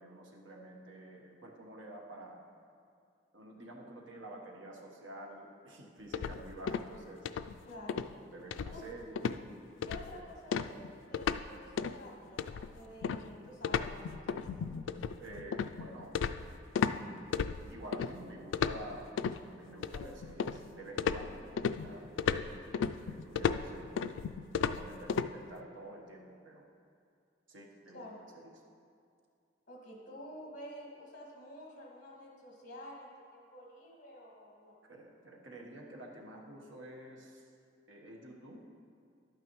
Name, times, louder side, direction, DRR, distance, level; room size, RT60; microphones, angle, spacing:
voice 1, 0.0-2.4 3.3-7.3 8.3-9.4 10.1-10.2 15.2-16.2 17.7-19.1 19.5-21.5 21.8-23.9 24.6-26.7 27.5-28.0 28.3-28.5 34.9-37.4 37.9-38.7, right 1 dB, 85° right, 0 dB, 1.2 m, -49 dB
sound 1, 6.1-7.0 7.2-7.6 7.9-8.1 8.5-8.9 9.2-9.4 9.8-10.2 10.5-11.5 11.8-12.0 12.4-17.0 17.3-18.1 18.5-19.4 19.8-20.7 21.0-25.3, left 6 dB, 85° left, 0.3 m, -34 dB
voice 2, 7.7-8.0 8.7-8.8 9.9-14.8 27.9-28.2 29.7-34.7, left 1 dB, 45° left, -2 dB, 1.8 m, -50 dB
11.5 x 9.0 x 3.1 m, 2.4 s
head